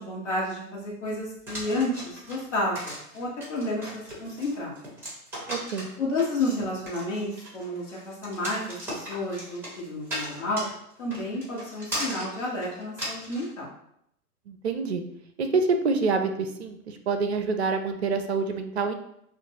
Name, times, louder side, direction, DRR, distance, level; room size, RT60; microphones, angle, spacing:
voice 1, 0.0-4.7 6.0-10.7 11.0-13.7, left 1 dB, 50° left, -4 dB, 1.3 m, -31 dB
sound 1, 1.5-13.5, equal, 5° right, 1.5 m, -37 dB
voice 2, 5.5-5.9 14.5-15.0 15.4-18.9, right 4 dB, 45° right, 7 dB, 0.6 m, -26 dB
6.7 x 2.5 x 2.9 m, 0.74 s
figure-of-eight pair, 115°, 45 cm